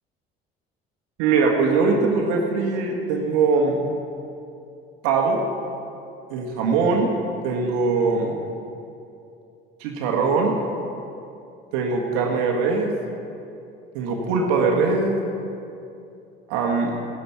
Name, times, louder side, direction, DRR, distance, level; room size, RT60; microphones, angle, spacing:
voice 1, 1.2-3.9 5.0-5.4 6.3-7.1 7.4-8.4 9.8-10.6 11.7-12.9 13.9-15.2 16.5-17.0, right 4 dB, 60° right, 1 dB, 1.6 m, -21 dB
16.5 x 10.0 x 4.5 m, 2.6 s
figure-of-eight pair, 60°, 30 cm